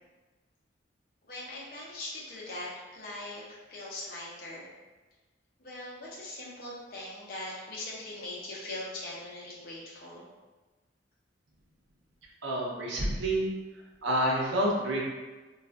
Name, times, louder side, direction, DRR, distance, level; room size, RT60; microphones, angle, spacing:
voice 1, 1.3-4.7 5.6-10.2, left 1 dB, 50° left, -5 dB, 0.7 m, -41 dB
voice 2, 12.4-13.5 14.0-15.1, right 1 dB, 80° right, -2 dB, 0.7 m, -28 dB
3.2 x 2.4 x 2.4 m, 1.2 s
head